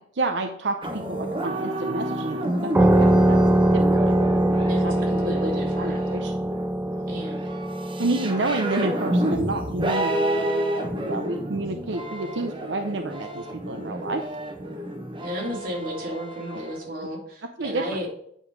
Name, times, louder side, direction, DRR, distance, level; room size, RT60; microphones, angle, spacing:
voice 1, 0.1-3.4 3.7-6.3 8.0-10.5 11.0-14.3 16.5-16.7 17.4-17.9, right 2 dB, 90° right, 5 dB, 0.7 m, -30 dB
sound 1, 0.8-16.8, right 1 dB, 30° right, 1.1 m, -30 dB
sound 2, 2.7-11.9, right 1 dB, 10° right, 0.3 m, -23 dB
voice 2, 4.6-6.0 7.1-7.5 15.2-18.1, equal, 55° right, -2 dB, 2.9 m, -33 dB
9.2 x 5.5 x 4.7 m, 0.69 s
head